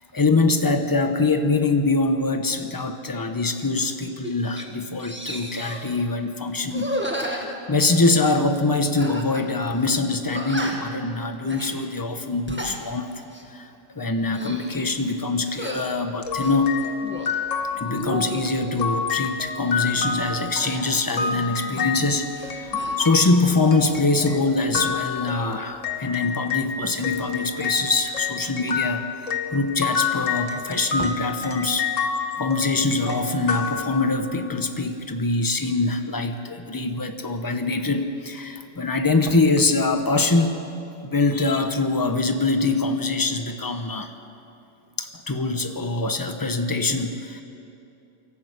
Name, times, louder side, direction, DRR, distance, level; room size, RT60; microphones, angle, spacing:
voice 1, 0.1-6.9 7.2-13.1 13.5-13.7 13.9-16.8 17.7-29.0 29.5-31.9 32.4-40.6 41.0-44.1 45.0-47.4, left 3 dB, 20° left, 7 dB, 1.0 m, -23 dB
sound 1, 3.8-3.9 4.2-4.7 5.0-5.9 6.7-8.2 9.0-9.5 9.8-9.9 10.3-11.0 11.4-11.7 12.3-12.8 13.2-13.5 14.1-14.7 15.5-15.9 16.4-17.4 17.9-18.8 20.6-22.0 22.3-23.0, equal, 10° right, 1.8 m, -33 dB
sound 2, 16.2-26.7 27.0-34.4, left 5 dB, 85° left, 1.6 m, -29 dB
23.5 x 14.5 x 8.3 m, 2.7 s
omnidirectional pair, 1.3 m